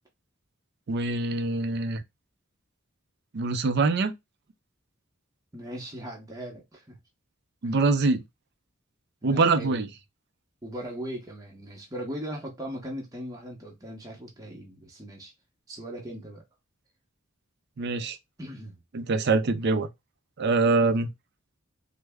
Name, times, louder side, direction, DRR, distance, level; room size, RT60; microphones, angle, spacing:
voice 1, 0.9-2.0 3.3-4.1 7.6-8.2 9.2-9.9 17.8-18.2 18.9-19.9 20.4-21.1, right 3 dB, 55° right, 0.4 m, -24 dB
voice 2, 5.5-7.0 7.6-7.8 9.2-9.8 10.6-15.3 15.7-16.4 18.4-18.8 20.8-20.9, equal, 15° right, 0.8 m, -39 dB
3.2 x 2.0 x 3.4 m
head